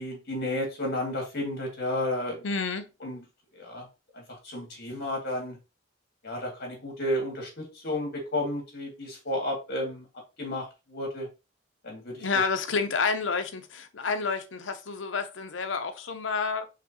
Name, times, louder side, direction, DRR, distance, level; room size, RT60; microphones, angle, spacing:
voice 1, 0.0-2.4 3.0-3.2 3.5-3.9 4.1-5.6 6.2-10.1 10.4-11.3 11.8-12.3, left 1 dB, 55° left, 2.1 m, -32 dB
voice 2, 2.4-2.9 12.2-16.6, left 4 dB, 75° left, 0.7 m, -29 dB
5.0 x 3.4 x 2.9 m
head